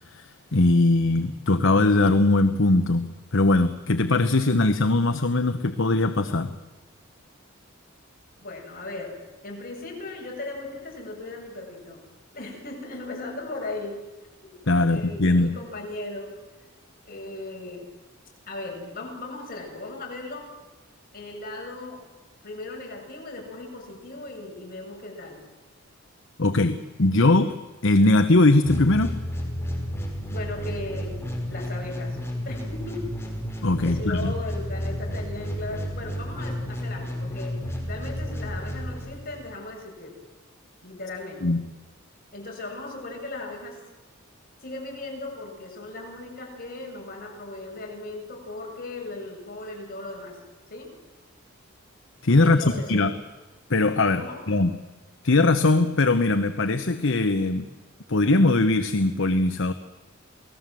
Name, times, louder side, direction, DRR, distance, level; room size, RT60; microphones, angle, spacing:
voice 1, 0.1-6.5 14.7-15.5 26.4-27.6 27.8-29.2 33.6-34.3 41.4-41.6 52.2-53.1 53.7-54.7 55.2-57.7 58.1-59.7, left 2 dB, 65° left, 9 dB, 1.1 m, -21 dB
voice 2, 8.4-9.2 9.4-12.0 12.3-14.0 14.9-16.3 17.0-17.8 18.5-20.5 21.1-22.0 22.4-25.4 30.3-32.2 32.4-33.0 33.8-37.6 37.9-40.1 40.8-41.5 42.3-43.8 44.6-50.4 50.7-50.9 52.4-53.0 54.2-54.4, left 2 dB, 45° left, 0 dB, 7.6 m, -37 dB
sound 1, 28.6-39.6, equal, 15° left, 5.2 m, -32 dB
29.0 x 19.0 x 7.7 m, 1.3 s
head